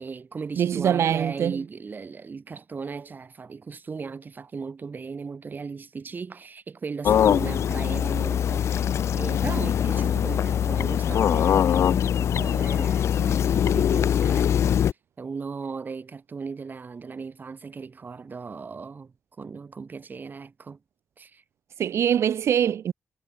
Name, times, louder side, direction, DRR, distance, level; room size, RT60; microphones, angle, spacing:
voice 1, 0.0-14.8 15.2-20.8 21.2-21.4, right 5 dB, 45° right, 3.8 m, -37 dB
voice 2, 0.6-1.6 21.8-22.9, right 9 dB, 80° right, 0.4 m, -23 dB
sound 1, 7.0-14.9, left 9 dB, 90° left, 0.9 m, -22 dB
wide cardioid pair, 120°, 5 cm